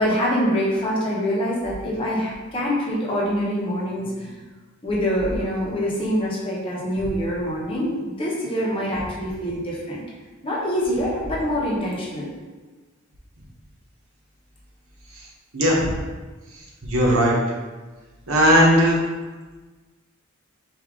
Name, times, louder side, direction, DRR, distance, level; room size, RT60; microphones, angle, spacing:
voice 1, 0.0-4.5 4.8-10.0 10.4-12.3, equal, 25° left, -6 dB, 1.0 m, -25 dB
voice 2, 15.5-15.9 16.8-17.4 18.3-19.0, equal, 85° right, -3 dB, 1.0 m, -17 dB
4.9 x 2.7 x 3.7 m, 1.3 s
head